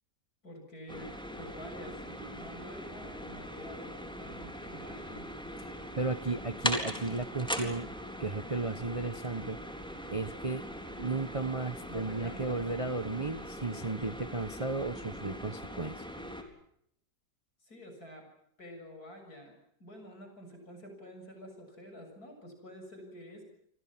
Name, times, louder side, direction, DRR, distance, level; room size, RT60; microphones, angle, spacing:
voice 1, 0.4-5.3 11.6-12.6 17.6-18.3 18.6-23.4, equal, 60° left, 4 dB, 7.7 m, -48 dB
sound 1, 0.9-16.4, equal, 5° left, 4.0 m, -40 dB
voice 2, 5.7-7.9 8.2-9.6 10.1-16.0, right 3 dB, 25° right, 12 dB, 0.9 m, -34 dB
30.0 x 25.5 x 6.0 m, 0.72 s
omnidirectional pair, 1.8 m